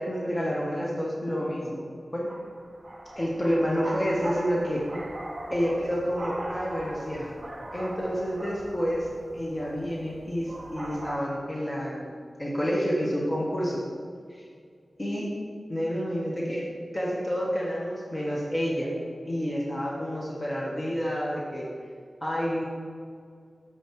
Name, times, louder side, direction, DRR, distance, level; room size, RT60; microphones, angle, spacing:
voice 1, 0.0-1.8 2.1-2.3 3.1-4.8 5.5-7.3 7.7-9.1 9.3-13.8 14.3-14.4 15.0-15.3 15.7-16.7 16.9-18.9 19.2-21.7 22.2-22.6, equal, 30° left, -4 dB, 1.5 m, -29 dB
sound 1, 2.3-11.2, right 1 dB, 40° right, 1.7 m, -40 dB
7.4 x 5.2 x 4.9 m, 2.2 s
cardioid pair, 50°, 0 cm